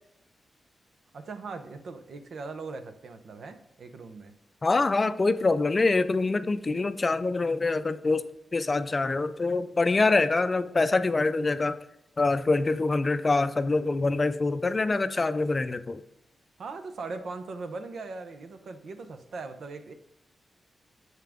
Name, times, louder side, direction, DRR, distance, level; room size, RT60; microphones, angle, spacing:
voice 1, 1.1-4.4 16.6-19.9, right 3 dB, 70° right, 8 dB, 0.8 m, -39 dB
voice 2, 4.6-11.8 12.2-16.0, left 3 dB, 35° left, 12 dB, 0.4 m, -25 dB
7.4 x 5.7 x 3.6 m, 0.83 s
cardioid pair, 95°, 0 cm